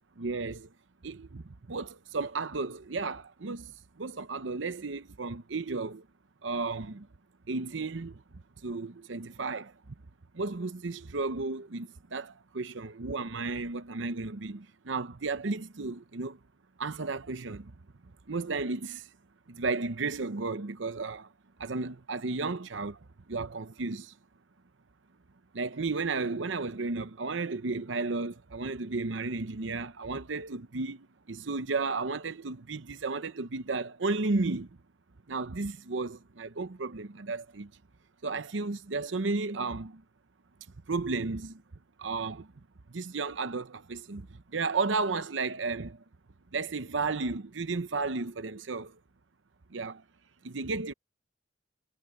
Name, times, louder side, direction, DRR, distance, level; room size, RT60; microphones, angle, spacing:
voice 1, 0.2-0.7 1.0-6.1 6.4-7.1 7.5-8.2 8.6-9.7 10.3-16.4 16.8-17.7 18.0-19.1 19.5-21.3 21.6-24.1 25.5-34.8 35.3-37.7 38.2-40.0 40.9-41.6 42.0-42.5 42.9-46.0 46.5-49.0 49.7-50.0 50.4-50.9, right 3 dB, 80° right, 0.8 m, -33 dB
head